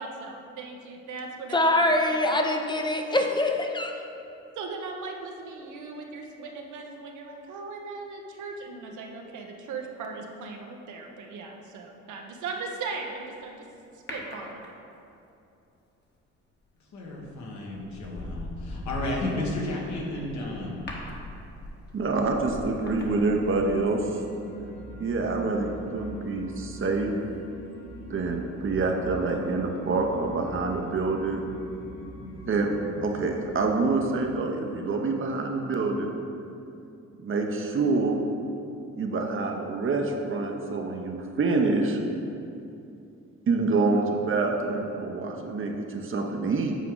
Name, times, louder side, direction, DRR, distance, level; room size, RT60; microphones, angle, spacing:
voice 1, 0.0-2.2 4.6-13.6 14.1-14.7, right 4 dB, 75° right, 2 dB, 0.9 m, -38 dB
voice 2, 1.5-4.0, left 1 dB, 15° left, 3 dB, 0.6 m, -24 dB
sound 1, 14.1-15.1 17.0-17.3 17.7-23.9 24.2-24.3, left 1 dB, 35° left, 1.2 m, -40 dB
voice 3, 16.9-20.8, left 1 dB, 70° left, -2 dB, 1.5 m, -32 dB
voice 4, 21.9-24.2 25.0-27.1 28.1-31.4 32.5-32.7 33.0-36.1 37.2-38.2 39.0-42.0 43.5-46.7, right 3 dB, 45° right, 2 dB, 0.8 m, -26 dB
sound 2, 22.2-34.4, equal, 85° left, 1.5 m, -43 dB
8.3 x 4.6 x 3.8 m, 2.7 s
cardioid pair, 90°, 30 cm